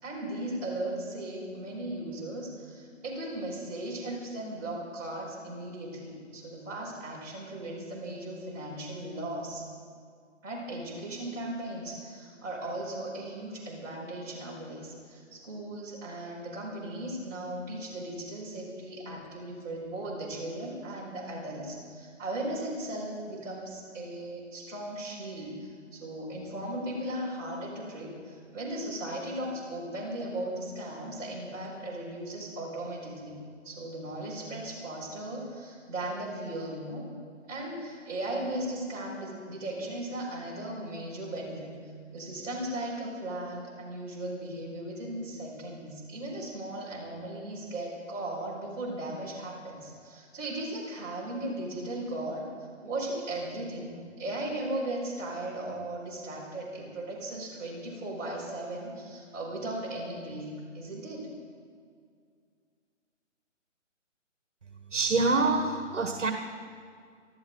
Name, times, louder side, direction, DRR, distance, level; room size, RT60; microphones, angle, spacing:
voice 1, 0.0-9.6 10.4-33.4 33.6-37.1 37.5-41.7 42.1-52.4 52.8-61.3, right 1 dB, 15° right, -9 dB, 4.9 m, -37 dB
voice 2, 64.9-66.3, right 3 dB, 70° right, 5 dB, 1.6 m, -26 dB
26.5 x 12.0 x 4.0 m, 2.1 s
hypercardioid pair, 170°, 38 cm